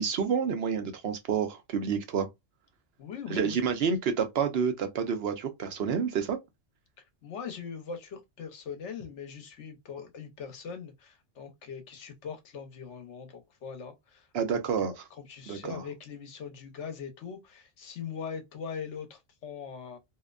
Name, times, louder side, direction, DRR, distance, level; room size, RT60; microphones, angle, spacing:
voice 1, 0.0-2.3 3.3-6.4 14.3-14.9 15.5-15.8, right 6 dB, 65° right, 0.8 m, -29 dB
voice 2, 3.0-3.6 7.2-20.0, left 6 dB, 80° left, 1.1 m, -41 dB
2.7 x 2.1 x 2.3 m
omnidirectional pair, 1.2 m